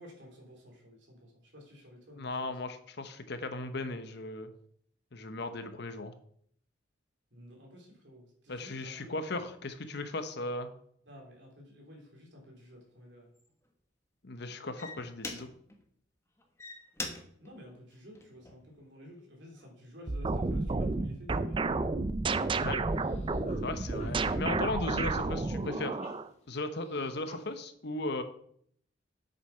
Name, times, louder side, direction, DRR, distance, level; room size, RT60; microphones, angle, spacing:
voice 1, 0.0-2.6 7.3-9.1 11.1-13.3 17.4-21.7, equal, 65° right, 0 dB, 3.3 m, -52 dB
voice 2, 2.2-4.5 5.1-6.1 8.5-10.7 14.2-15.5 22.6-22.8 23.6-26.0 26.5-28.2, left 2 dB, 60° left, 9 dB, 0.9 m, -37 dB
sound 1, 12.6-12.7 13.4-13.7 14.4-14.5 14.8-15.8 16.4-18.8 19.3-19.7, left 2 dB, 15° left, 1.2 m, -43 dB
sound 2, 20.1-26.3, right 3 dB, 25° right, 0.4 m, -31 dB
sound 3, 22.2-27.7, left 2 dB, 35° left, 2.0 m, -58 dB
8.0 x 6.9 x 5.6 m, 0.65 s
head